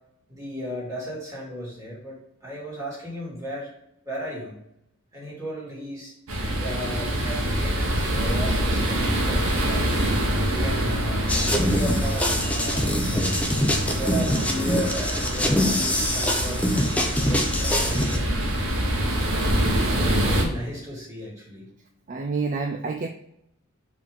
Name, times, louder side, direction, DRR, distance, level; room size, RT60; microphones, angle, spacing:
voice 1, 0.3-3.7 4.0-4.5 5.1-6.1 6.5-9.8 10.5-13.4 13.8-18.7 20.0-21.7, equal, 15° right, -6 dB, 2.4 m, -35 dB
sound 1, 6.3-20.4, equal, 80° right, 1.4 m, -25 dB
sound 2, 11.3-18.2, left 1 dB, 5° left, 0.6 m, -24 dB
voice 2, 22.1-23.1, right 4 dB, 40° right, 5 dB, 0.4 m, -28 dB
5.0 x 3.6 x 5.2 m, 0.78 s
head